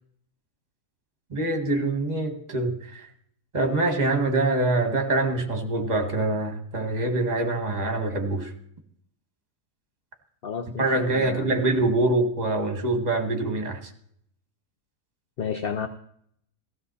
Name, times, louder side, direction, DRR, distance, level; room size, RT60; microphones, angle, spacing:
voice 1, 1.3-3.1 3.5-8.5 10.8-13.9, right 2 dB, 30° right, 5 dB, 2.0 m, -25 dB
voice 2, 10.4-11.5 15.4-15.9, left 7 dB, 50° left, 9 dB, 0.8 m, -31 dB
16.0 x 14.5 x 4.2 m, 0.67 s
omnidirectional pair, 1.5 m